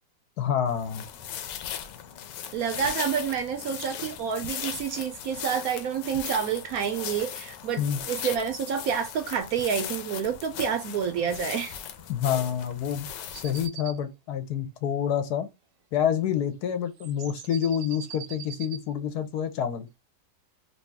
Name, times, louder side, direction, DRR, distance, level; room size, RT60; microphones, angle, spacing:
voice 1, 0.4-1.1 7.8-8.0 12.1-13.1 13.3-15.5 15.9-19.9, left 9 dB, 70° left, 1.2 m, -28 dB
sound 1, 0.7-13.7, left 9 dB, 85° left, 1.3 m, -38 dB
voice 2, 2.5-11.8, right 7 dB, 70° right, 0.9 m, -29 dB
sound 2, 13.3-14.0 17.0-18.8, right 10 dB, 85° right, 1.3 m, -42 dB
3.0 x 2.7 x 3.3 m
omnidirectional pair, 1.9 m